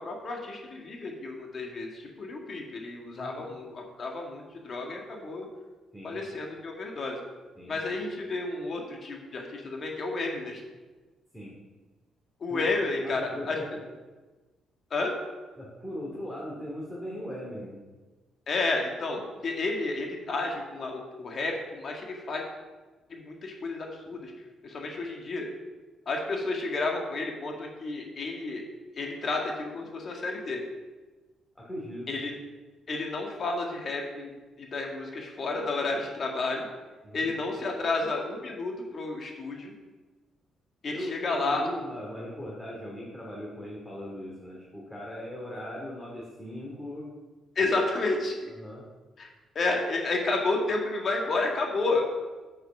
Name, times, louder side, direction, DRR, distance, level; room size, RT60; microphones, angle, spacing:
voice 1, 0.0-5.5 6.0-7.2 7.7-10.6 12.4-13.2 13.5-13.6 14.9-15.1 18.5-22.4 23.1-24.3 24.6-25.5 26.0-28.6 29.0-30.6 32.1-32.4 32.9-34.3 34.6-36.6 37.1-39.7 40.8-41.6 47.5-48.5 49.2-52.0, left 3 dB, 50° left, 1 dB, 1.7 m, -31 dB
voice 2, 13.0-13.8 15.6-17.8 31.6-32.1 37.0-37.3 40.9-47.1 47.6-47.7 48.5-48.8, equal, 10° left, -4 dB, 2.4 m, -39 dB
8.1 x 6.5 x 6.0 m, 1.2 s
cardioid pair, 90°, 0 cm